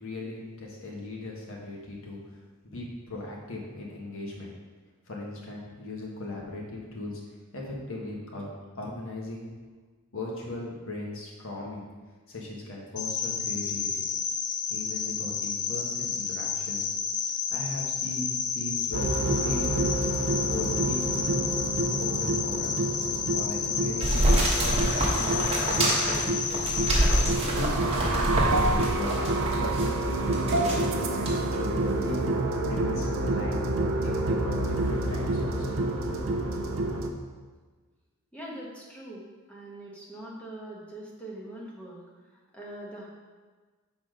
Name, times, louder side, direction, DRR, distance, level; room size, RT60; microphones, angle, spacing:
voice 1, 0.0-2.2 2.6-4.5 5.1-7.2 7.5-8.5 8.7-9.5 10.1-11.9 12.3-14.1 14.7-16.9 17.3-19.1 19.4-20.1 20.5-21.3 22.0-22.9 23.3-24.8 25.2-26.8 27.5-29.2 29.6-32.3 32.6-33.7 34.0-36.0, left 2 dB, 65° left, -2 dB, 1.4 m, -38 dB
Cricket, 13.0-27.3, left 6 dB, 85° left, 0.5 m, -31 dB
sound 1, 18.9-37.1, right 2 dB, 65° right, 0.6 m, -28 dB
sound 2, 24.0-29.9 30.3-30.9 31.3-31.4, right 1 dB, 30° right, 1.3 m, -26 dB
voice 2, 38.3-42.0 42.5-43.1, right 1 dB, 5° left, -5 dB, 1.3 m, -42 dB
5.9 x 4.3 x 5.0 m, 1.4 s
head